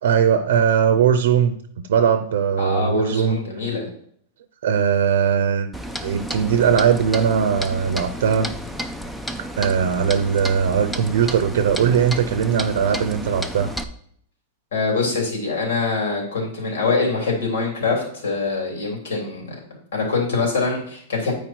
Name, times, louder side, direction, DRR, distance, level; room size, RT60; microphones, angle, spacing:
voice 1, 0.0-1.6 1.9-3.4 4.6-5.7 6.0-8.5 9.4-13.7, right 7 dB, 70° right, 9 dB, 0.6 m, -19 dB
voice 2, 2.6-3.9 14.7-19.6 19.9-21.3, left 4 dB, 90° left, 0 dB, 3.4 m, -24 dB
Clock, 5.7-13.8, equal, ahead, 0.4 m, -32 dB
9.1 x 4.7 x 4.5 m, 0.65 s
supercardioid pair, 175°, 0 cm